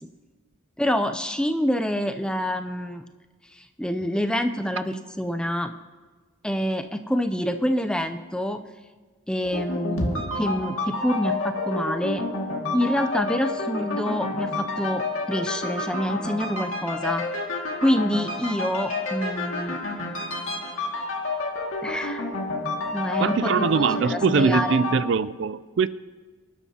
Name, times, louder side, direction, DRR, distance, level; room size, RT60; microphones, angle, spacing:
voice 1, 0.8-3.0 3.5-5.7 6.4-8.6 9.3-12.2 12.7-17.2 17.8-19.8 21.8-22.2 22.9-23.7 24.0-24.8, equal, 5° left, 0.5 m, -26 dB
sound 1, 9.4-25.0, left 2 dB, 80° left, 2.1 m, -29 dB
voice 2, 23.2-25.9, right 5 dB, 55° right, 0.3 m, -22 dB
25.0 x 12.0 x 2.9 m
head